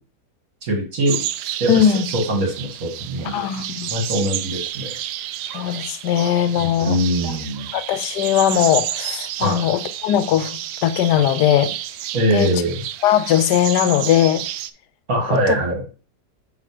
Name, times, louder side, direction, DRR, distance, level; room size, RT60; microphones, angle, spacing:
voice 1, 0.6-1.2 1.6-3.5 3.9-5.0 6.6-7.7 9.4-9.7 12.1-12.8 15.1-15.8, right 1 dB, 55° right, 2.1 m, -22 dB
sound 1, 1.0-14.7, right 12 dB, 75° right, 1.1 m, -31 dB
voice 2, 1.7-2.1 3.2-3.9 5.5-7.0 7.2-7.3 7.7-11.7 12.3-12.5 13.0-14.4 15.3-15.6, left 10 dB, 75° left, 1.2 m, -19 dB
7.5 x 3.5 x 5.0 m
omnidirectional pair, 1.9 m